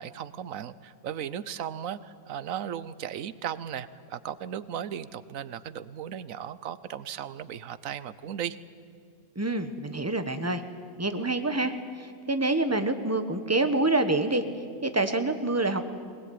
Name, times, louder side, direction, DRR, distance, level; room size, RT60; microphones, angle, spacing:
voice 1, 0.0-8.6, right 9 dB, 80° right, 16 dB, 1.2 m, -36 dB
voice 2, 9.4-10.6 11.0-14.4 14.8-15.8, right 2 dB, 10° right, 8 dB, 1.1 m, -27 dB
21.5 x 19.5 x 9.5 m, 2.2 s
omnidirectional pair, 1.4 m